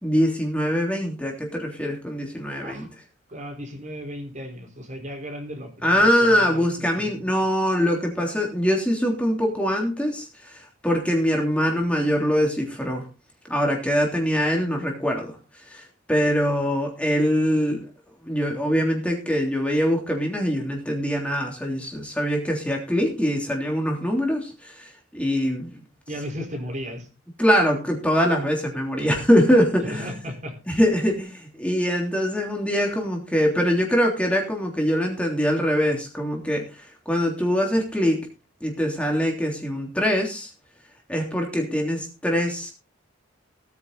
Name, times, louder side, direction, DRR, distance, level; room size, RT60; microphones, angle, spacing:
voice 1, 0.0-2.9 5.8-13.0 13.5-15.3 15.7-17.8 18.2-25.7 27.4-30.3 30.7-38.2 38.6-40.5 41.1-42.7, equal, 5° left, 1 dB, 3.3 m, -23 dB
voice 2, 3.3-7.5 26.1-27.1 29.8-30.6, equal, 40° right, 2 dB, 4.4 m, -35 dB
18.0 x 9.5 x 4.1 m, 0.31 s
head